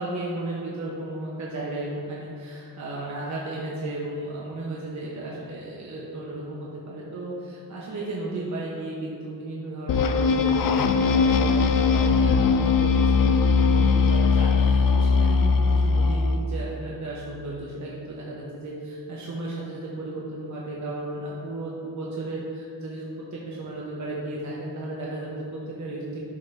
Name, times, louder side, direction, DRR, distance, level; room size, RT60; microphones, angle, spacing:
voice 1, 0.0-23.1 23.3-26.2, right 2 dB, 50° right, -5 dB, 1.0 m, -34 dB
sound 1, 9.9-16.4, left 4 dB, 65° left, 0.5 m, -20 dB
11.0 x 4.0 x 3.4 m, 2.7 s
wide cardioid pair, 130°, 37 cm